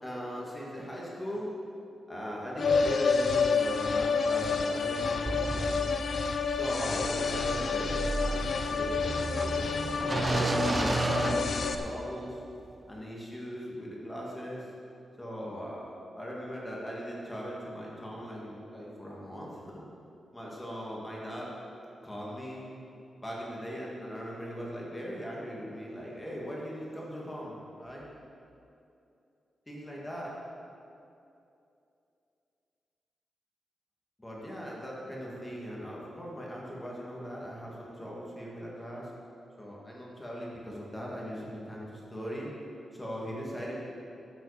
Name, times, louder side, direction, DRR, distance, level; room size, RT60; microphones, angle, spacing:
voice 1, 0.0-1.5 2.1-5.9 6.5-9.2 9.5-12.4 12.9-14.7 15.2-19.8 20.3-21.5 22.0-22.9 23.2-28.1 29.7-30.3 34.2-39.1 39.6-42.5 42.9-43.7, equal, 10° left, -4 dB, 2.5 m, -39 dB
sound 1, 2.6-11.7, left 5 dB, 55° left, 0.7 m, -29 dB
sound 2, 5.3-12.2, right 3 dB, 25° right, 0.4 m, -33 dB
13.0 x 8.2 x 5.2 m, 2.7 s
wide cardioid pair, 135°, 0 cm